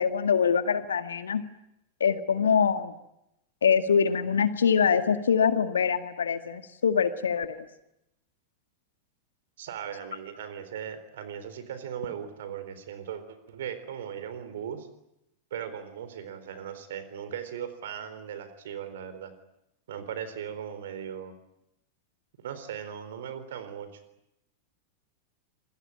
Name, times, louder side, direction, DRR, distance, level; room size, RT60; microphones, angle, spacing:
voice 1, 0.0-1.4 2.0-2.9 3.6-7.6, left 6 dB, 70° left, 9 dB, 2.0 m, -24 dB
voice 2, 9.6-14.9 15.5-19.3 19.9-21.3 22.4-24.0, right 8 dB, 60° right, 12 dB, 4.0 m, -38 dB
27.0 x 22.0 x 8.9 m, 0.84 s
figure-of-eight pair, 90°, 0 cm